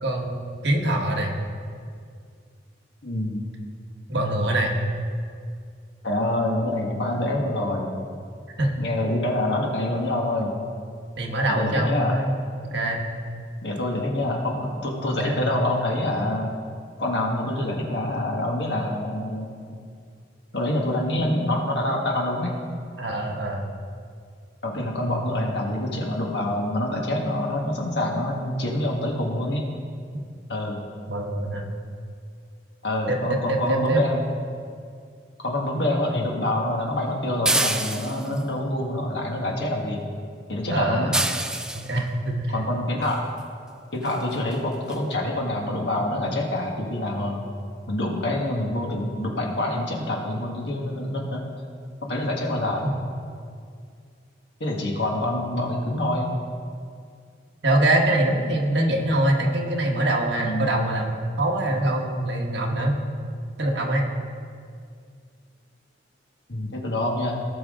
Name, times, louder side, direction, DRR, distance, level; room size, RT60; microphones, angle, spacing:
voice 1, 0.0-1.3 4.1-4.7 8.6-8.7 11.2-12.3 12.7-13.0 15.1-15.4 23.0-23.6 31.1-31.7 33.1-34.0 40.7-41.1 41.7-42.5 57.6-63.0 63.6-64.1, right 1 dB, 70° right, 0 dB, 1.4 m, -24 dB
voice 2, 3.0-3.4 6.0-7.9 8.8-10.5 11.5-12.2 13.6-16.5 17.0-19.8 20.5-22.6 24.6-29.6 30.5-30.8 32.8-34.2 35.4-40.0 40.5-41.2 42.5-43.2 43.9-47.4 47.9-51.4 52.0-52.8 54.6-56.3 60.4-60.7 66.5-67.3, left 1 dB, 65° left, 0 dB, 1.7 m, -26 dB
sound 1, 37.5-38.4 41.1-41.9 43.4-43.5 44.1-44.2 44.5-44.6 44.9-45.0, right 1 dB, 5° right, 0.3 m, -25 dB
18.0 x 6.1 x 3.8 m, 2.2 s
head